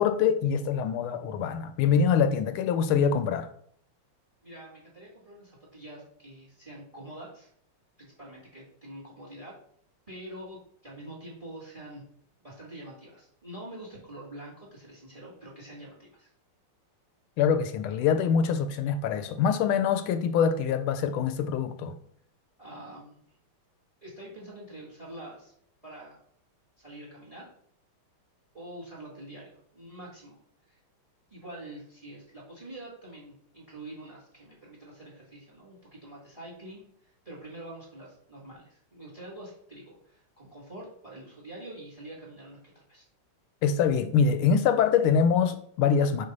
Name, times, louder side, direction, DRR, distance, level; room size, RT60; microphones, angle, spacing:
voice 1, 0.0-3.5 17.4-22.0 43.6-46.3, left 6 dB, 80° left, 1.4 m, -24 dB
voice 2, 4.4-7.5 8.0-9.5 10.1-12.0 12.4-16.3 22.6-23.2 24.0-25.5 25.8-26.2 26.8-27.5 28.5-30.4 30.7-30.8 31.3-43.1, right 1 dB, 20° right, 1.6 m, -45 dB
5.8 x 3.0 x 5.3 m
omnidirectional pair, 2.4 m